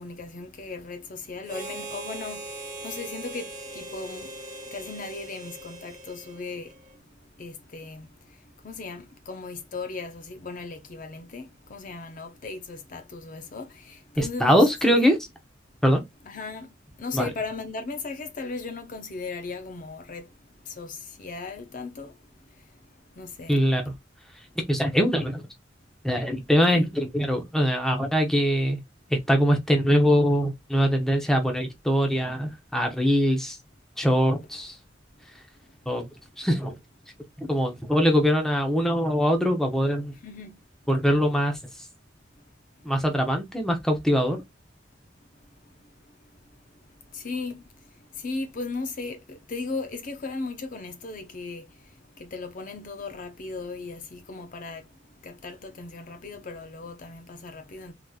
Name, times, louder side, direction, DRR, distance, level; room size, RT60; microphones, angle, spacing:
voice 1, 0.0-6.8 7.4-8.4 8.6-15.1 16.3-20.3 20.6-22.2 22.5-22.6 23.1-23.6 26.7-26.8 40.2-40.6 47.1-47.6 48.1-54.9 55.2-57.9, left 3 dB, 45° left, 0.6 m, -37 dB
Harmonica, 1.4-6.9, right 2 dB, 20° right, 1.3 m, -40 dB
voice 2, 14.2-15.2 15.8-16.0 17.1-17.3 23.5-23.8 24.6-25.4 26.0-28.8 29.1-33.6 34.0-34.8 35.9-36.1 36.4-36.7 37.4-40.1 40.9-41.6 42.8-44.4, equal, 5° left, 0.7 m, -22 dB
3.7 x 2.9 x 2.3 m
head